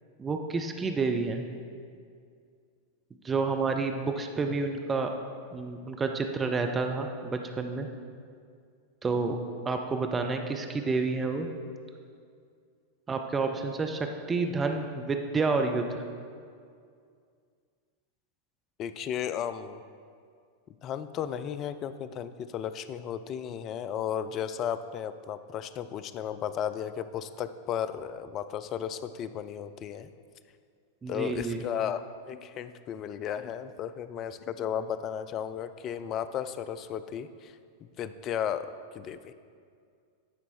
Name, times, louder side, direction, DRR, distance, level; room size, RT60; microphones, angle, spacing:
voice 1, 0.2-1.5 3.2-5.1 5.5-7.9 9.0-9.4 9.6-11.5 13.1-16.0 31.0-31.6, right 4 dB, 15° right, 4 dB, 0.5 m, -29 dB
voice 2, 18.8-19.8 20.8-30.1 31.1-37.6 38.0-39.3, left 9 dB, 35° left, 12 dB, 0.3 m, -34 dB
10.0 x 4.2 x 4.4 m, 2.2 s
figure-of-eight pair, 90°, 0 cm